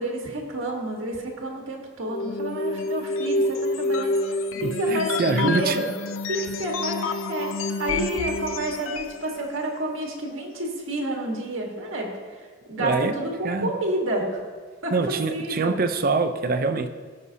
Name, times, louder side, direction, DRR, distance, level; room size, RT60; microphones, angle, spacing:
voice 1, 0.0-5.9 6.3-14.4 14.8-15.8, right 1 dB, 85° right, 1 dB, 1.5 m, -30 dB
sound 1, 2.1-9.2, left 2 dB, 90° left, 0.5 m, -28 dB
voice 2, 4.6-5.8 12.8-13.7 14.9-16.9, right 3 dB, 45° right, 9 dB, 0.5 m, -25 dB
16.0 x 5.5 x 2.8 m, 1.5 s
head